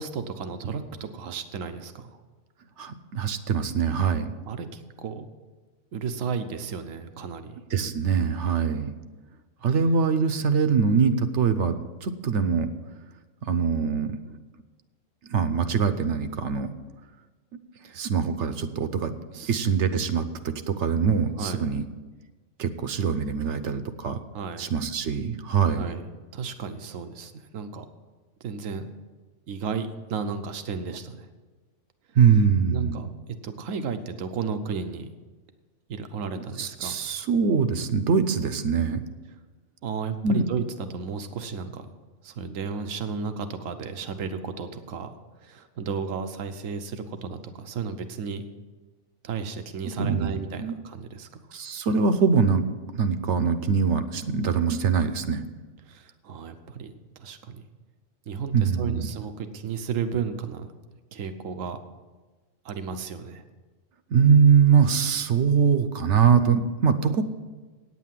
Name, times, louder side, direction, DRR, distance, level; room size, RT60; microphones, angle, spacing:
voice 1, 0.0-2.2 4.4-5.2 5.9-7.6 17.8-18.0 19.3-19.6 21.4-21.6 24.3-24.7 25.7-27.8 28.4-28.9 29.5-31.3 32.7-33.1 33.4-35.1 35.9-37.0 39.8-41.9 42.2-45.1 45.4-48.4 49.2-51.4 55.9-57.6 58.3-60.7 61.1-61.8 62.6-63.4, right 5 dB, 85° right, 9 dB, 1.2 m, -33 dB
voice 2, 2.8-4.3 7.7-8.9 9.6-12.7 13.4-14.1 15.3-16.7 17.9-19.1 19.5-21.8 22.6-24.2 24.6-25.9 32.2-33.0 36.6-39.0 40.2-40.4 50.0-50.7 51.5-52.6 52.9-55.4 58.5-59.1 64.1-67.3, right 6 dB, 70° right, 10 dB, 1.0 m, -23 dB
9.0 x 8.4 x 7.4 m, 1.3 s
omnidirectional pair, 1.3 m